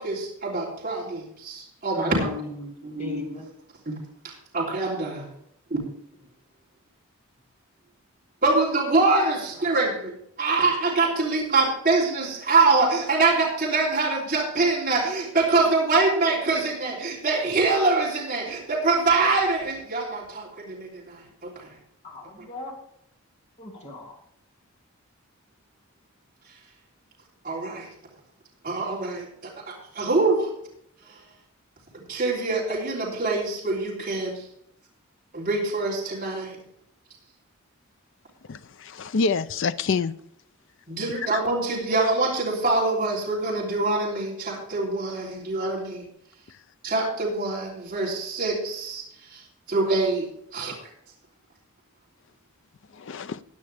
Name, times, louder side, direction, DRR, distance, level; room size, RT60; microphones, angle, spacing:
voice 1, 0.0-2.3 2.8-3.3 3.9-4.0 4.2-5.3 5.7-5.8 8.4-10.1 10.4-21.7 27.4-27.9 28.6-30.5 31.1-31.2 31.9-34.5 35.3-36.6 40.9-46.1 46.8-49.4 49.7-50.3 50.5-50.7, right 3 dB, 40° right, 3.3 m, -24 dB
voice 2, 1.9-3.5 22.0-22.7 23.6-24.2, left 2 dB, 30° left, 2.6 m, -37 dB
voice 3, 38.5-40.1 41.3-41.4 52.9-53.4, left 4 dB, 55° left, 0.4 m, -27 dB
16.0 x 9.6 x 3.4 m
head